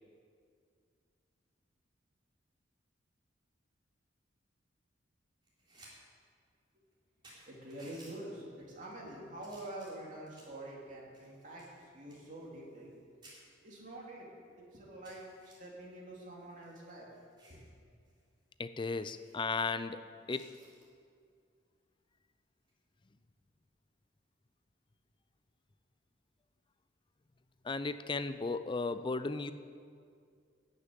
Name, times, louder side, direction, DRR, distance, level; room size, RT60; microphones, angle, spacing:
sound 1, 5.4-5.9 6.3-6.4 6.9-7.0 7.2-8.1 8.8-9.1 9.4-10.6 11.1-13.0 13.2-13.4 14.0-14.1 14.4-14.5 15.0-15.5 16.4-17.7 18.1-18.2 18.5-18.6 19.0-19.4 20.3-20.9 22.6-22.8, right 1 dB, 25° right, 3.9 m, -59 dB
voice 1, 7.5-13.1 13.6-14.3 14.5-17.1 17.4-17.6, right 1 dB, 40° right, -4 dB, 2.9 m, -47 dB
voice 2, 18.6-20.0 20.3-20.5 27.6-29.5, left 4 dB, 25° left, 12 dB, 0.4 m, -35 dB
13.5 x 6.7 x 9.2 m, 2.3 s
head